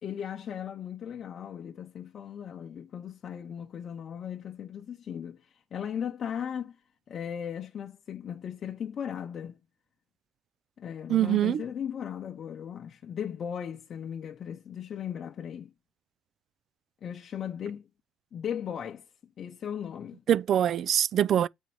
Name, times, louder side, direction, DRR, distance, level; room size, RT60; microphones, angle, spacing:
voice 1, 0.0-6.8 7.1-9.6 10.8-15.7 17.0-17.9 18.3-19.1 19.4-20.2, left 8 dB, 50° left, 0.8 m, -37 dB
voice 2, 11.1-11.6 20.3-21.5, right 10 dB, 55° right, 0.4 m, -24 dB
7.3 x 4.4 x 5.2 m
supercardioid pair, 85°, 0 cm